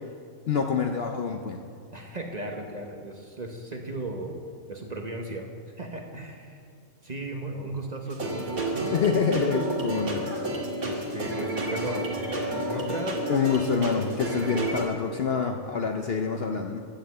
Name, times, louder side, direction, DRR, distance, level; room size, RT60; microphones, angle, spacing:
voice 1, 0.5-1.6 8.9-10.4 13.3-16.8, left 6 dB, 55° left, 4 dB, 0.7 m, -26 dB
voice 2, 1.9-4.4 4.7-6.6 7.0-8.9 10.8-13.2 14.4-14.9, right 2 dB, 35° right, 2 dB, 0.9 m, -36 dB
sound 1, 8.1-14.8, right 1 dB, 75° right, 2.3 m, -30 dB
10.5 x 7.7 x 7.8 m, 2.2 s
omnidirectional pair, 1.5 m